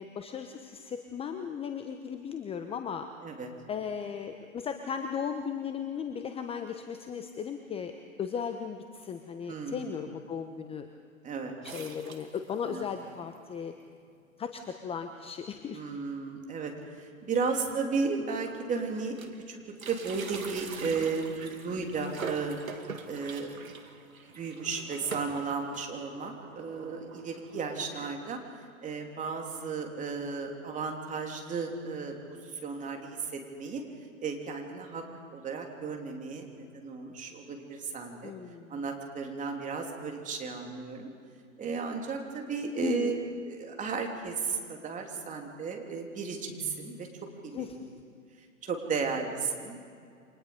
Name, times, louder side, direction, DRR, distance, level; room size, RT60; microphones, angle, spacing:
voice 1, 0.0-3.0 3.7-7.9 8.2-10.9 11.6-13.7 14.4-16.0 17.5-17.6 38.2-38.8 42.8-43.1 47.5-47.8, left 7 dB, 15° left, 7 dB, 0.9 m, -36 dB
voice 2, 9.5-10.0 11.2-11.5 12.6-12.8 15.7-19.6 19.8-22.6 23.1-23.6 24.3-28.4 28.8-33.8 34.2-35.0 35.3-38.3 38.7-41.1 41.6-43.1 43.5-47.1 47.4-47.7 48.6-49.8, right 4 dB, 20° right, 2 dB, 3.2 m, -34 dB
sound 1, 11.6-12.8 13.4-13.5 13.6-13.7 14.6-14.7 15.1-15.3 15.6-15.7 17.0-17.1 17.8-17.9 18.2-19.4 19.7-28.1, right 5 dB, 75° right, 2.4 m, -44 dB
29.0 x 25.0 x 5.3 m, 2.3 s
figure-of-eight pair, 115°, 41 cm